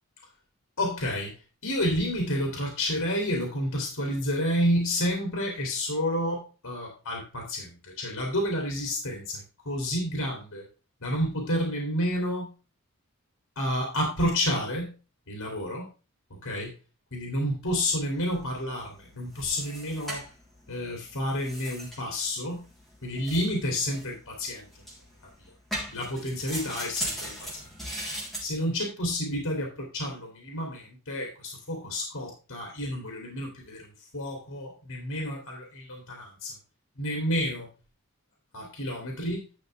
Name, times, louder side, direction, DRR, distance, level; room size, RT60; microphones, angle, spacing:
voice 1, 0.8-10.6 11.0-12.5 13.5-14.9 15.3-15.9 16.4-16.7 17.1-20.2 20.7-22.6 23.0-24.7 25.4-25.5 25.9-27.7 28.4-36.6 37.0-37.7 38.5-39.4, equal, 75° left, 0 dB, 3.1 m, -30 dB
sound 1, 17.8-28.4, equal, ahead, 3.7 m, -40 dB
12.0 x 6.6 x 3.4 m, 0.33 s
head